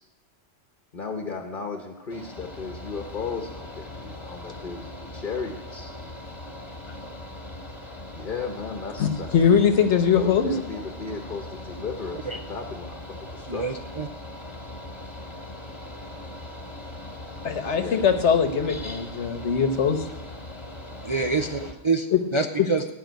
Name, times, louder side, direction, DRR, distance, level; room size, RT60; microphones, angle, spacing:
voice 1, 0.9-6.0 8.1-9.3 10.1-13.6 17.8-18.2, left 5 dB, 45° left, 3 dB, 1.2 m, -35 dB
Mechanical fan, 2.1-21.7, left 1 dB, 25° left, 1.5 m, -40 dB
voice 2, 9.0-10.5 17.4-20.1 22.1-22.2 22.6-22.7, left 7 dB, 75° left, 7 dB, 1.4 m, -21 dB
voice 3, 13.5-14.1 21.0-22.9, right 4 dB, 35° right, 4 dB, 0.5 m, -27 dB
15.0 x 5.5 x 9.1 m, 0.99 s
omnidirectional pair, 1.2 m